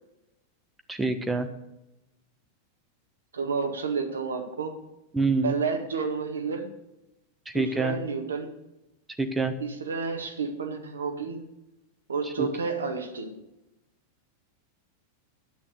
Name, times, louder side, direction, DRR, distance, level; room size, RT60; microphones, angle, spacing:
voice 1, 0.9-1.5 5.1-5.5 7.5-8.0 9.2-9.5 12.4-12.5, right 3 dB, 10° right, 8 dB, 1.1 m, -26 dB
voice 2, 3.3-4.8 5.4-6.7 7.5-8.5 9.6-11.4 12.1-13.3, right 5 dB, 70° right, 5 dB, 1.7 m, -30 dB
10.5 x 8.7 x 6.7 m, 0.93 s
figure-of-eight pair, 90°, 0 cm